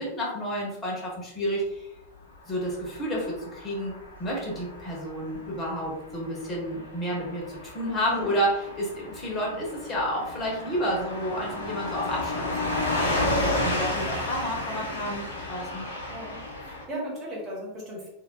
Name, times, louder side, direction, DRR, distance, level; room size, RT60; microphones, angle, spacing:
voice 1, 0.0-1.9 2.5-15.2 15.5-15.8 16.9-17.1, equal, 25° left, -3 dB, 1.2 m, -30 dB
Car passing by / Truck, 2.5-16.8, left 2 dB, 70° left, 0.9 m, -32 dB
voice 2, 16.1-18.1, equal, 25° right, -5 dB, 1.0 m, -37 dB
3.7 x 2.8 x 2.3 m, 0.87 s
figure-of-eight pair, 90°, 0 cm